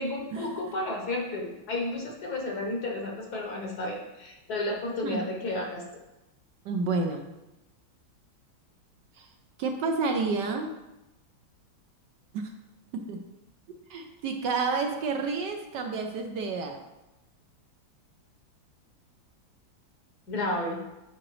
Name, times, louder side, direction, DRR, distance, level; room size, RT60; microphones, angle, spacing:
voice 1, 0.0-5.8 20.3-20.8, left 2 dB, 60° left, 0 dB, 1.5 m, -32 dB
voice 2, 6.6-7.3 9.2-9.3 9.6-10.7 12.3-12.5 12.9-13.2 13.9-16.8, right 4 dB, 70° right, 4 dB, 1.2 m, -30 dB
8.8 x 5.0 x 3.1 m, 0.97 s
omnidirectional pair, 2.1 m